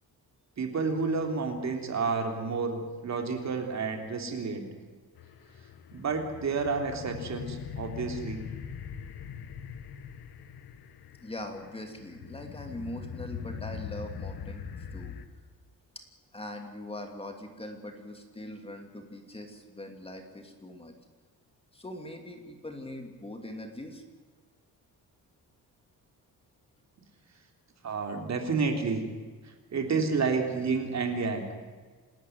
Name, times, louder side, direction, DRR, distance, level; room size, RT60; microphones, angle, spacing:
voice 1, 0.6-4.7 5.9-8.5 27.8-29.0 29.4-31.5, right 4 dB, 45° right, 4 dB, 3.4 m, -30 dB
sound 1, 5.2-15.3, left 7 dB, 80° left, 1.9 m, -41 dB
voice 2, 11.2-14.6 14.9-15.1 16.3-21.0 21.7-24.0, left 1 dB, 15° left, 4 dB, 2.7 m, -41 dB
27.5 x 13.0 x 9.3 m, 1.4 s
wide cardioid pair, 155°, 37 cm